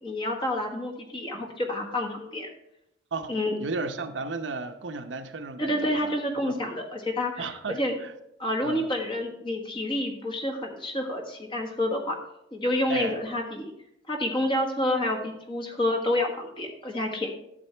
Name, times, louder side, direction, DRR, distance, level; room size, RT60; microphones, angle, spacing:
voice 1, 0.0-2.5 3.3-3.5 5.6-8.0 8.4-12.2 12.5-13.7 14.1-17.3, left 1 dB, 30° left, 3 dB, 1.4 m, -28 dB
voice 2, 3.1-6.1 6.4-6.5 7.4-8.1 8.6-8.9 12.9-13.2, right 3 dB, 85° right, 7 dB, 0.7 m, -34 dB
11.0 x 7.6 x 3.3 m, 0.80 s
head